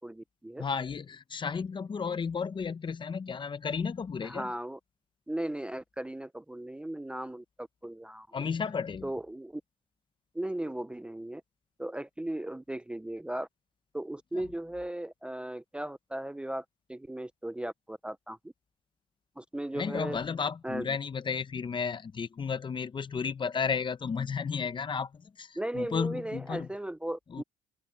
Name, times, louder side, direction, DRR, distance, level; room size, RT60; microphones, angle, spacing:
voice 1, 0.0-0.6 4.2-4.8 5.3-8.3 9.0-9.6 10.3-11.4 11.8-13.5 13.9-16.6 16.9-18.4 19.4-20.2 20.6-20.9 25.6-27.4, right 1 dB, 5° right, 0.6 m, -37 dB
voice 2, 0.6-4.5 8.3-9.1 14.3-14.4 19.7-26.7 27.3-27.4, left 6 dB, 30° left, 0.8 m, -33 dB
open air
cardioid pair, 110°, 17 cm